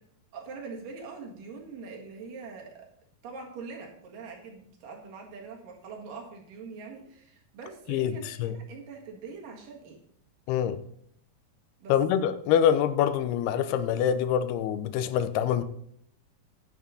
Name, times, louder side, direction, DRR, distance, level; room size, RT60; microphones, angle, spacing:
voice 1, 0.3-2.9 3.2-10.0 11.8-11.9, right 4 dB, 65° right, 0 dB, 3.2 m, -43 dB
voice 2, 7.9-8.6 10.5-10.8 11.9-15.6, left 9 dB, 85° left, 13 dB, 2.7 m, -25 dB
10.5 x 6.4 x 5.5 m, 0.69 s
omnidirectional pair, 4.5 m